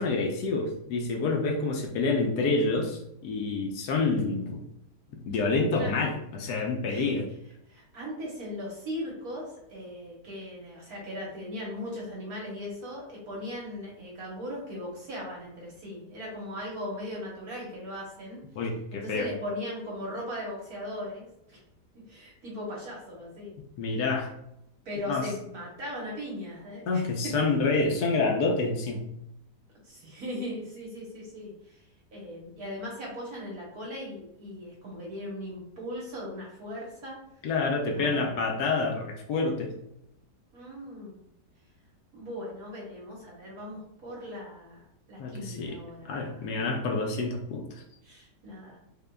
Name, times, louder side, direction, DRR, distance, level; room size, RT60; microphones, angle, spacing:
voice 1, 0.0-4.6 5.1-7.2 18.6-19.3 23.8-24.3 25.1-25.3 26.9-29.1 37.4-39.7 45.2-45.8 46.1-47.8, left 3 dB, 75° left, 2 dB, 1.2 m, -28 dB
voice 2, 5.7-6.1 6.9-7.2 7.7-18.4 18.9-21.6 22.1-23.5 24.8-27.4 29.8-37.2 37.9-38.5 40.5-41.2 42.1-44.8 45.1-46.7 48.0-48.8, left 1 dB, 65° right, -4 dB, 1.5 m, -38 dB
3.7 x 3.7 x 2.2 m, 0.80 s
omnidirectional pair, 1.8 m